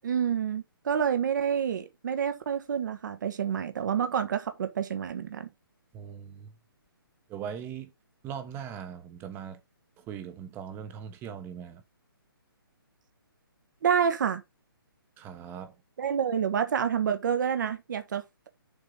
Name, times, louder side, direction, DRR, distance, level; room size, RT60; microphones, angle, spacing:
voice 1, 0.0-5.5 13.8-14.4 16.0-18.2, right 8 dB, 50° right, 1.2 m, -28 dB
voice 2, 5.9-6.5 7.3-7.9 8.2-9.6 10.1-11.8 15.2-15.7, right 8 dB, 20° right, 1.1 m, -40 dB
7.0 x 3.9 x 5.2 m
figure-of-eight pair, 140°, 12 cm